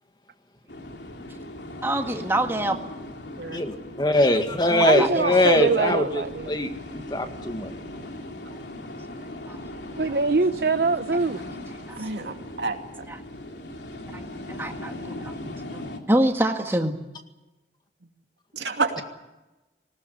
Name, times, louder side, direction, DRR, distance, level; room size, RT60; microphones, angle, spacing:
sound 1, 0.7-16.0, left 1 dB, 85° left, 3.0 m, -39 dB
voice 1, 1.8-2.8 4.7-5.6 11.9-12.0 13.1-13.2 14.1-15.3 15.7-15.8 16.1-17.0, right 1 dB, 15° right, 4 dB, 1.8 m, -26 dB
voice 2, 3.5-7.7, left 1 dB, 25° left, 6 dB, 1.9 m, -22 dB
voice 3, 4.8-6.5 10.0-11.4, right 3 dB, 65° right, 10 dB, 0.8 m, -23 dB
voice 4, 12.0-12.8 18.5-19.0, right 3 dB, 85° right, 4 dB, 2.5 m, -28 dB
19.5 x 19.0 x 9.9 m, 1.0 s
head